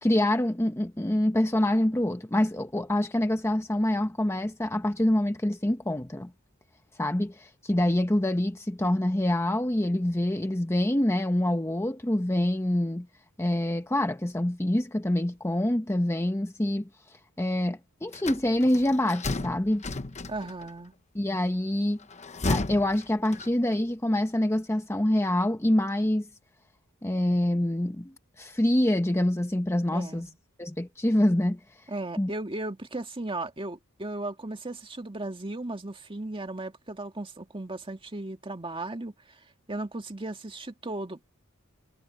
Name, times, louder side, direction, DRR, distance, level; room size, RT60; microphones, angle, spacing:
voice 1, 0.0-6.3 7.0-13.1 13.4-16.9 17.4-19.8 21.1-22.0 22.5-26.3 27.0-30.3 30.6-31.6 32.2-32.3, left 1 dB, 10° left, 0.9 m, -26 dB
sound 1, 18.1-20.7 22.0-23.8, left 2 dB, 30° left, 1.0 m, -33 dB
voice 2, 20.3-20.9 29.9-30.4 31.9-41.2, right 2 dB, 25° right, 2.0 m, -36 dB
head